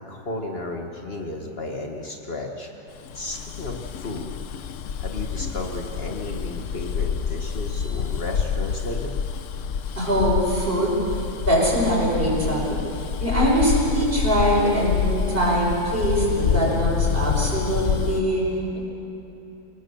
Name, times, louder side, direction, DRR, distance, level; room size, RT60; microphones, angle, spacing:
voice 1, 0.1-2.7 3.1-4.3 5.0-9.2, left 2 dB, 50° left, 2 dB, 1.7 m, -33 dB
Bus, 3.1-18.2, left 7 dB, 70° left, 1.1 m, -27 dB
voice 2, 10.0-12.8 13.2-18.4 18.7-18.8, equal, 40° right, -4 dB, 6.1 m, -22 dB
27.5 x 18.5 x 7.1 m, 2.9 s
omnidirectional pair, 1.4 m